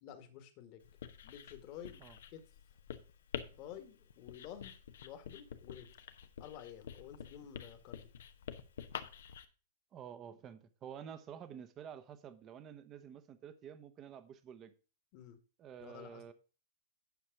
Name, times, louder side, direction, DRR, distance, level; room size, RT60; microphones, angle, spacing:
voice 1, 0.0-0.8 1.2-2.0 2.3-2.4 3.5-4.7 5.0-5.9 6.4-8.1 15.1-15.4 15.8-16.2, left 10 dB, 45° left, 1.6 m, -51 dB
Writing, 0.8-9.5, left 8 dB, 70° left, 0.9 m, -48 dB
voice 2, 9.9-14.7 15.6-16.3, right 8 dB, 30° right, 1.0 m, -50 dB
9.5 x 5.4 x 4.9 m
hypercardioid pair, 125°, 0 cm